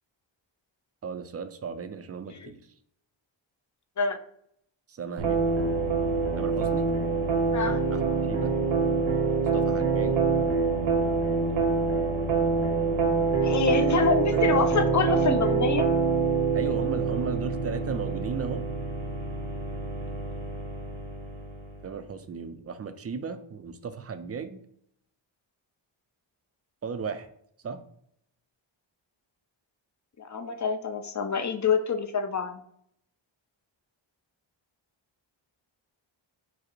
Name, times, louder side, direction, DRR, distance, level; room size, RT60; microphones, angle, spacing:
voice 1, 1.0-2.6 4.9-5.5 6.3-6.9 7.9-8.5 9.5-10.2 13.8-14.0 14.3-14.6 16.5-18.6 21.8-24.6 26.8-27.3 27.6-27.8, right 6 dB, 35° right, 10 dB, 0.4 m, -35 dB
sound 1, 5.2-21.9, right 4 dB, 70° right, 0.9 m, -26 dB
voice 2, 13.4-15.9 30.2-32.6, left 5 dB, 40° left, 7 dB, 0.5 m, -27 dB
4.8 x 2.0 x 4.4 m, 0.69 s
wide cardioid pair, 85°, 48 cm